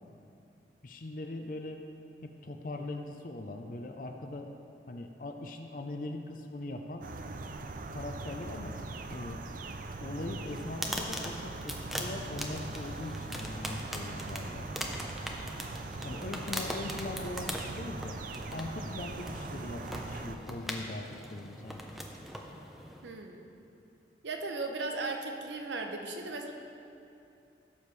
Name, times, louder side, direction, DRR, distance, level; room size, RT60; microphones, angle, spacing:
voice 1, 0.8-1.8 2.2-4.5 4.9-7.1 7.9-8.8 9.1-9.5 10.0-14.7 16.0-18.2 18.5-21.8, left 2 dB, 50° left, 4 dB, 0.6 m, -41 dB
sound 1, 7.0-20.4, right 3 dB, 50° right, 0.5 m, -41 dB
sound 2, 10.5-23.1, equal, ahead, 0.6 m, -41 dB
voice 2, 23.0-23.5 24.2-26.5, right 3 dB, 85° right, 4 dB, 0.8 m, -36 dB
16.0 x 7.1 x 3.3 m, 2.7 s
head